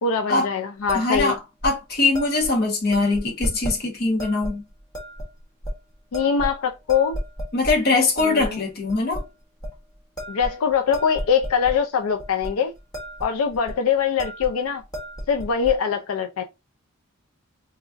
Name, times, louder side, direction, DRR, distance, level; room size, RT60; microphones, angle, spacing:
voice 1, 0.0-1.4 6.1-7.2 8.2-8.6 10.3-12.7 13.2-14.8 15.3-16.4, left 6 dB, 90° left, 0.4 m, -23 dB
voice 2, 0.9-4.6 7.5-9.2, left 3 dB, 50° left, 1.1 m, -22 dB
sound 1, 0.9-1.3 1.6-1.8 2.1-2.5 2.9-3.8 4.2-4.5 4.9-5.3 5.6-5.7 6.1-6.6 6.9-7.8 8.2-8.5 8.9-9.2 9.6-9.8 10.2-11.8 12.2-12.5 12.8-13.3 13.5-13.8 14.2-14.5 14.8-15.7, equal, 20° left, 1.1 m, -32 dB
4.0 x 2.4 x 2.5 m
head